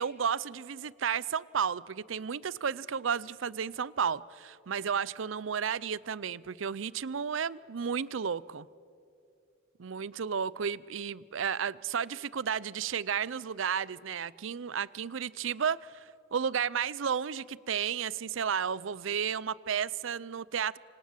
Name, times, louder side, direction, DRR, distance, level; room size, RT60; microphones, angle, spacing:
voice 1, 0.0-8.7 9.8-20.8, right 7 dB, 75° right, 0.5 m, -33 dB
26.0 x 25.5 x 7.4 m
head